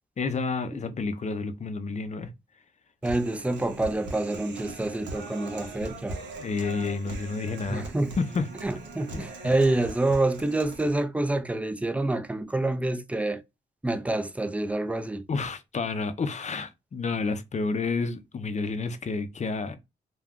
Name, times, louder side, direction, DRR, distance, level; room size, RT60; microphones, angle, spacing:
voice 1, 0.2-2.3 6.4-8.4 9.1-9.2 15.3-19.8, left 4 dB, 40° left, 0.6 m, -30 dB
voice 2, 3.0-6.2 7.7-8.1 8.6-13.4 13.8-15.3, right 2 dB, 5° right, 0.4 m, -27 dB
Human voice, 3.0-11.0, right 3 dB, 75° right, 0.8 m, -41 dB
2.3 x 2.3 x 3.5 m
cardioid pair, 70°, 19 cm